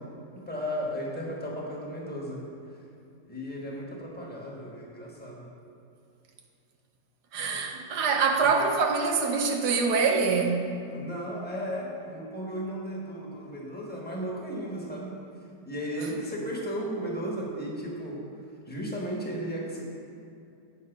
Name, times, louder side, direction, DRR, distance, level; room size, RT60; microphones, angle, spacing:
voice 1, 0.3-2.4 3.2-5.5 8.4-8.5 10.8-15.2 15.7-18.2 18.7-19.8, equal, 5° left, -4 dB, 1.1 m, -35 dB
voice 2, 7.3-10.7, right 4 dB, 75° right, 3 dB, 1.4 m, -25 dB
8.2 x 5.4 x 5.2 m, 2.6 s
omnidirectional pair, 1.8 m